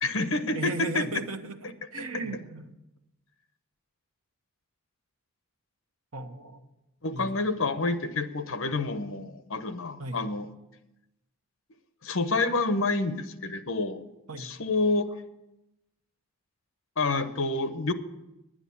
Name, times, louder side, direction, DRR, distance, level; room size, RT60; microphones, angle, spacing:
voice 1, 0.0-1.1 7.0-10.5 12.0-14.0 14.4-15.1 17.0-17.9, left 3 dB, 70° left, 11 dB, 0.9 m, -28 dB
voice 2, 0.5-2.7 6.1-6.6 7.1-7.3 10.0-10.3 14.3-14.5, right 2 dB, 80° right, 5 dB, 1.1 m, -36 dB
10.5 x 9.9 x 7.1 m, 0.92 s
head